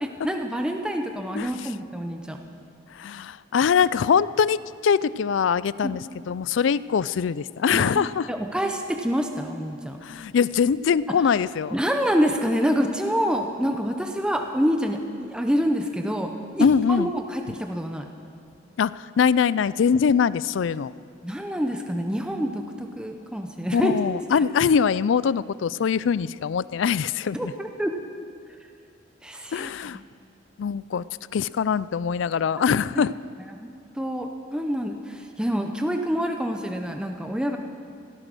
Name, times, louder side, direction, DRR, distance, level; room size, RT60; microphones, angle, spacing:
voice 1, 0.0-2.4 5.8-5.9 7.7-10.0 11.1-11.2 11.7-18.1 21.2-24.0 24.3-24.4 27.3-27.9 29.2-30.1 32.9-33.0 33.6-37.6, equal, 5° right, 4 dB, 0.7 m, -27 dB
voice 2, 1.4-1.7 2.9-8.3 10.0-11.8 16.6-17.1 18.8-20.9 23.7-27.5 29.5-30.0 30.6-31.0 31.3-33.1, left 6 dB, 70° left, 18 dB, 0.4 m, -23 dB
16.5 x 13.0 x 6.2 m, 2.4 s
head